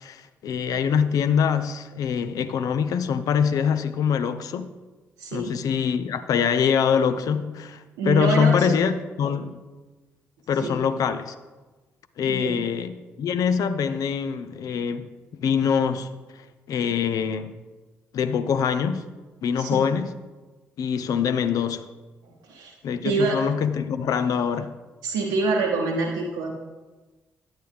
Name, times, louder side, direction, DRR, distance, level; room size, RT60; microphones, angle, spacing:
voice 1, 0.0-4.7 5.3-9.6 10.5-11.3 12.2-15.1 15.4-16.1 16.7-17.6 18.1-19.0 19.4-20.1 20.8-21.9 22.8-24.8, left 7 dB, 60° left, 0.5 m, -24 dB
voice 2, 5.2-5.6 8.0-8.7 10.6-10.8 12.3-12.6 19.6-19.8 22.2-22.7 23.0-23.4 25.0-26.5, right 4 dB, 75° right, 0.8 m, -26 dB
9.7 x 9.0 x 3.4 m
hypercardioid pair, 40°, 7 cm